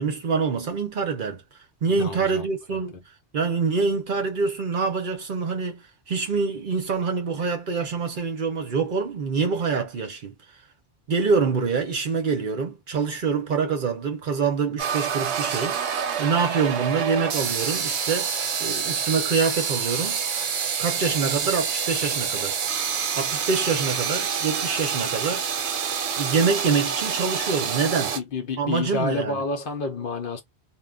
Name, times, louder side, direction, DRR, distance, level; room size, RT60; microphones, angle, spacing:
voice 1, 0.0-1.4 1.8-3.0 3.3-10.3 11.1-15.8 16.2-20.2 20.8-22.6 23.1-25.6 26.2-28.2 28.6-29.4, right 5 dB, 55° right, 0.7 m, -25 dB
voice 2, 1.8-2.5 28.1-30.4, left 4 dB, 60° left, 0.7 m, -29 dB
sound 1, 14.8-28.2, right 7 dB, 80° right, 0.9 m, -27 dB
2.1 x 2.1 x 3.5 m
omnidirectional pair, 1.1 m